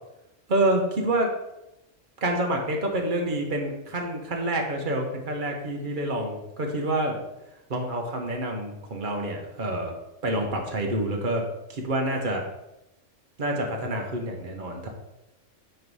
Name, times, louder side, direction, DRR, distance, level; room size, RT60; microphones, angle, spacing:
voice 1, 0.5-1.3 2.2-7.2 7.7-9.9 10.2-11.4 11.7-12.4 13.4-14.9, right 1 dB, 40° right, 1 dB, 1.2 m, -27 dB
4.7 x 4.5 x 5.4 m, 0.92 s
omnidirectional pair, 1.3 m